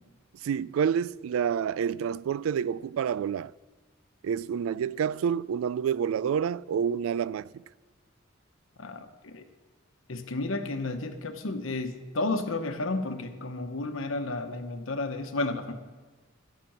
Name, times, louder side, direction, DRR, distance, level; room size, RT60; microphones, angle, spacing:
voice 1, 0.4-3.5 4.2-7.4, right 7 dB, 80° right, 0.3 m, -28 dB
voice 2, 8.8-9.4 10.1-15.7, left 2 dB, 70° left, 1.0 m, -32 dB
13.0 x 6.0 x 7.3 m
head